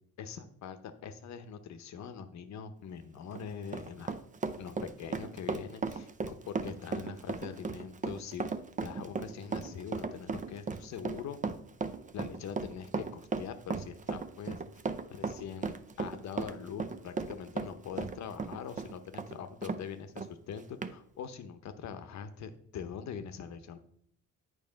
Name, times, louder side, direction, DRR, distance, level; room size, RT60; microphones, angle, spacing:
voice 1, 0.2-4.1 4.6-8.5 8.8-11.4 12.1-14.6 15.1-23.8, left 7 dB, 65° left, 10 dB, 0.8 m, -43 dB
Run, 3.2-19.8 20.2-20.3 20.8-20.9, right 4 dB, 25° right, 0.5 m, -36 dB
8.7 x 3.3 x 5.1 m, 0.67 s
cardioid pair, 90°, 30 cm